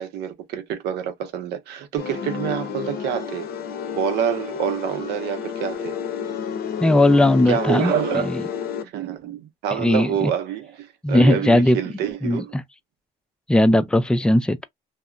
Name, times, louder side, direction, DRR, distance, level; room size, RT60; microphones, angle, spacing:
voice 1, 0.0-3.5 4.0-6.0 7.5-12.5, right 9 dB, 80° right, 0.6 m, -27 dB
sound 1, 2.0-8.8, left 7 dB, 65° left, 0.6 m, -30 dB
voice 2, 6.8-7.9 8.2-8.4 9.7-10.3 11.0-11.8 12.2-12.6 13.5-14.6, left 1 dB, 5° left, 0.3 m, -18 dB
2.7 x 2.0 x 2.3 m
cardioid pair, 110°, 17 cm